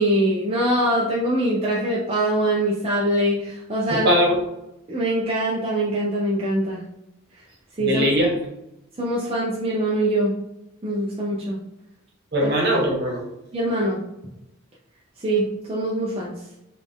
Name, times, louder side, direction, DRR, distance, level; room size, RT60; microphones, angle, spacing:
voice 1, 0.0-4.1 4.9-6.8 7.8-8.1 9.0-10.4 10.8-11.6 12.4-12.5 13.5-14.0 15.2-16.3, right 1 dB, 30° right, -5 dB, 0.5 m, -23 dB
voice 2, 3.9-4.4 7.8-8.4 12.3-13.2, equal, 55° right, -2 dB, 1.3 m, -20 dB
4.0 x 2.5 x 3.5 m, 0.88 s
head